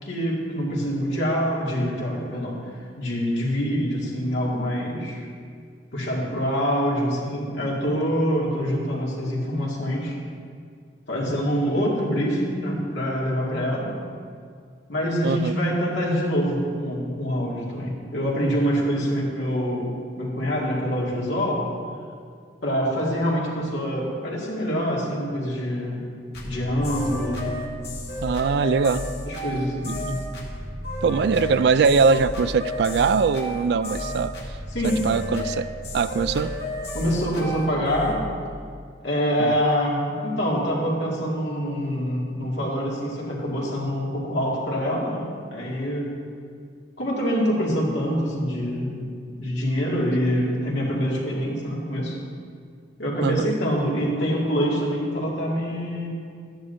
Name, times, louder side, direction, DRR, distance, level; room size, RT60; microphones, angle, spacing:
voice 1, 0.0-2.6 3.0-5.3 5.9-10.2 11.1-13.9 14.9-21.7 22.6-26.1 26.4-27.6 29.3-30.2 34.7-35.1 36.9-38.3 39.0-46.1 47.0-52.2 53.0-56.1, equal, 80° left, -4 dB, 2.2 m, -25 dB
voice 2, 15.2-15.8 28.2-29.1 29.9-30.2 31.0-34.3 34.8-35.7 35.9-36.5 39.4-39.5 53.2-53.6, right 5 dB, 60° right, 14 dB, 0.3 m, -22 dB
sound 1, 26.3-38.2, left 1 dB, 60° left, 1.7 m, -32 dB
13.5 x 10.0 x 2.7 m, 2.1 s
head